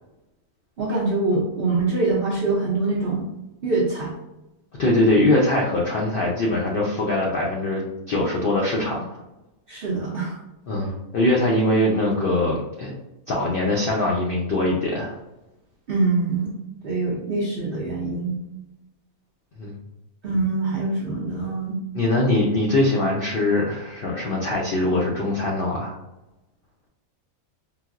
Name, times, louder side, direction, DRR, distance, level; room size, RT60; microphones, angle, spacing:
voice 1, 0.8-3.2 3.6-4.1 9.7-10.4 15.9-16.5 16.8-18.4 20.2-21.8, right 3 dB, 65° right, -5 dB, 0.5 m, -24 dB
voice 2, 4.8-9.2 10.7-12.9 13.3-15.2 19.6-19.8 21.9-25.9, left 1 dB, 75° left, -2 dB, 0.5 m, -22 dB
4.0 x 2.0 x 2.4 m, 0.95 s
omnidirectional pair, 1.5 m